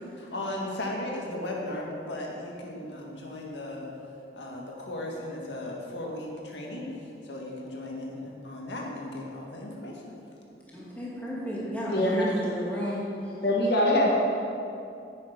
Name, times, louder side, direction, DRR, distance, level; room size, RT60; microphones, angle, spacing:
voice 1, 0.2-3.9 4.3-10.1, left 1 dB, 90° left, -1 dB, 1.8 m, -36 dB
voice 2, 10.7-13.0, left 1 dB, 10° left, -7 dB, 2.4 m, -33 dB
voice 3, 11.8-12.3 13.4-14.1, left 1 dB, 65° left, -2 dB, 1.6 m, -23 dB
10.5 x 9.3 x 5.2 m, 2.6 s
head